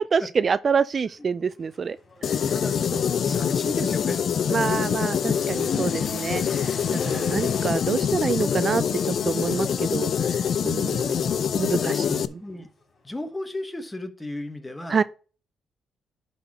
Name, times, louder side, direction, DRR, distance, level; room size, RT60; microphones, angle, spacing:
voice 1, 0.0-2.0 2.3-2.4 4.5-10.4 10.6-12.2 14.9-15.0, right 5 dB, 40° right, 0.3 m, -27 dB
Motorcycle / Accelerating revving vroom, 0.9-13.2, left 3 dB, 35° left, 3.8 m, -45 dB
sound 1, 2.2-12.3, left 7 dB, 60° left, 0.5 m, -25 dB
voice 2, 2.5-4.2 11.8-12.1 12.4-12.7 13.0-15.0, left 1 dB, 15° left, 1.3 m, -34 dB
11.0 x 4.2 x 4.2 m
cardioid pair, 90°, 0 cm